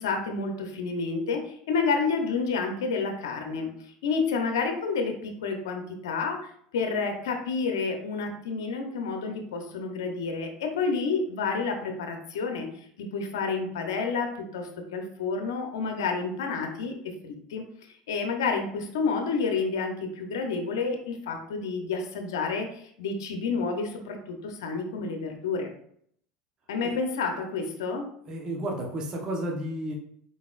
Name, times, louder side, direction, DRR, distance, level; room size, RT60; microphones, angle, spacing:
voice 1, 0.0-12.7 13.0-17.7 18.1-25.7 26.7-28.1, left 4 dB, 85° left, 5 dB, 0.7 m, -30 dB
voice 2, 28.3-29.9, right 1 dB, 35° right, 0 dB, 1.0 m, -32 dB
4.1 x 4.1 x 2.4 m, 0.65 s
supercardioid pair, 100°, 2 cm